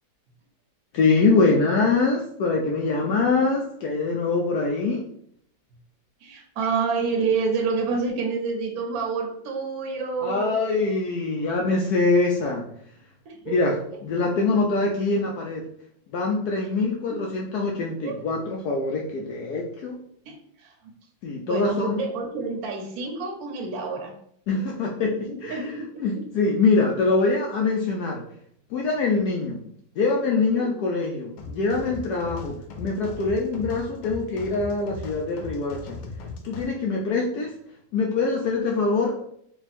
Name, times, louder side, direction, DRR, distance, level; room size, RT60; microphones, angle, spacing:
voice 1, 0.9-5.0 10.2-12.6 13.5-13.8 14.0-15.6 16.1-20.0 21.2-22.0 24.5-25.1 25.4-25.7 26.0-28.2 28.7-29.6 30.0-36.0 36.4-37.5 37.9-39.2, left 3 dB, 75° left, -1 dB, 1.0 m, -24 dB
voice 2, 6.2-10.5 13.3-13.6 17.1-17.3 18.0-18.5 20.2-20.7 21.4-24.1 25.3-26.2 30.5-30.7, right 4 dB, 60° right, 0 dB, 1.1 m, -28 dB
sound 1, 31.4-36.7, left 3 dB, 90° left, 1.4 m, -38 dB
3.5 x 2.3 x 4.1 m, 0.67 s
omnidirectional pair, 2.1 m